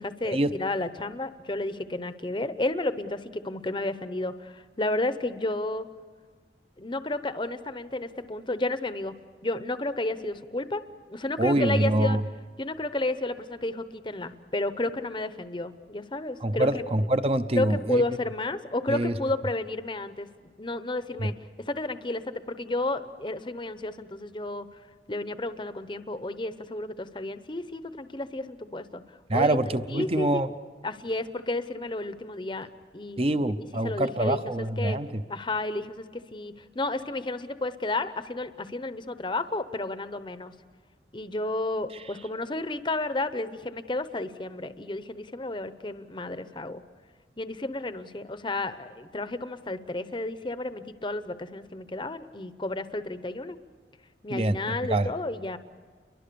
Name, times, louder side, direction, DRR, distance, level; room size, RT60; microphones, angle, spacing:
voice 1, 0.0-5.9 6.8-9.2 9.4-10.8 11.1-12.2 12.6-16.8 17.6-20.3 20.6-21.3 21.7-24.7 25.1-29.0 29.3-29.6 29.9-30.4 30.8-32.7 32.9-34.4 34.8-35.0 35.3-40.5 41.1-46.8 47.4-53.6 54.2-55.6, left 2 dB, 25° left, 0.8 m, -32 dB
voice 2, 11.4-12.2 16.4-18.0 18.9-19.1 21.2-21.3 29.3-30.5 33.2-35.2 54.3-55.1, right 1 dB, 30° right, 0.8 m, -25 dB
30.0 x 23.0 x 6.9 m
head